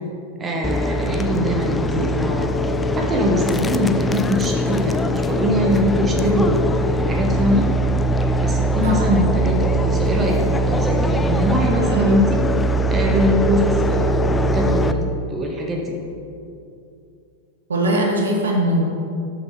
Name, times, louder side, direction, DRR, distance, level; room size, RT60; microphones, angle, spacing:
voice 1, 0.4-2.5 3.0-7.7 8.4-12.4 12.9-15.0 15.3-16.0, equal, 20° right, 0 dB, 1.0 m, -22 dB
sound 1, 0.6-14.9, right 1 dB, 15° left, 0.3 m, -21 dB
voice 2, 11.7-12.1 17.7-18.8, right 1 dB, 70° right, -1 dB, 1.2 m, -21 dB
6.6 x 6.4 x 4.6 m, 2.6 s
figure-of-eight pair, 90°, 0 cm